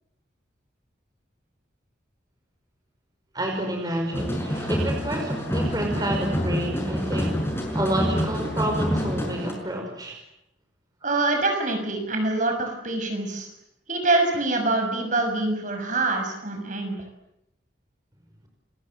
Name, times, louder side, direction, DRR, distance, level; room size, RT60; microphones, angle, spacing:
voice 1, 3.3-7.4 7.7-10.1, right 1 dB, 20° right, 2 dB, 5.6 m, -29 dB
sound 1, 4.1-9.5, equal, 15° left, 5.9 m, -27 dB
voice 2, 11.0-13.5 13.9-16.9, right 2 dB, 40° right, 4 dB, 6.4 m, -25 dB
29.0 x 25.0 x 7.8 m, 0.79 s
head